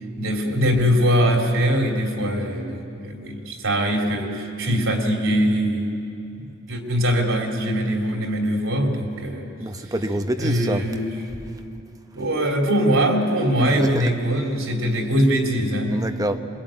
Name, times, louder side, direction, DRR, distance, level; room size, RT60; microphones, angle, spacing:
voice 1, 0.2-6.0 6.3-9.5 10.4-11.1 12.1-16.1, equal, 90° right, 2 dB, 3.3 m, -22 dB
voice 2, 9.6-10.9 13.6-14.1 15.9-16.4, right 1 dB, 15° right, 7 dB, 1.0 m, -26 dB
26.0 x 22.0 x 9.0 m, 2.7 s
head